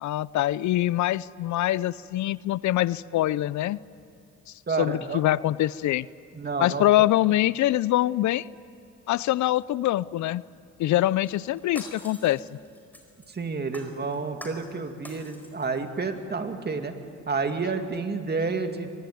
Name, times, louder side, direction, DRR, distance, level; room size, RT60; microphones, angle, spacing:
voice 1, 0.0-3.8 4.8-6.1 6.6-8.5 9.1-10.4 10.8-12.6, left 14 dB, 70° left, 20 dB, 0.5 m, -24 dB
voice 2, 4.7-5.2 6.3-7.1 13.3-17.0 17.3-18.9, right 4 dB, 35° right, 6 dB, 2.3 m, -30 dB
Shatter, 11.2-13.3 13.7-14.7 15.0-15.8 16.2-16.3, left 1 dB, 5° left, 4.6 m, -45 dB
23.5 x 21.0 x 9.4 m, 2.3 s
cardioid pair, 90°, 30 cm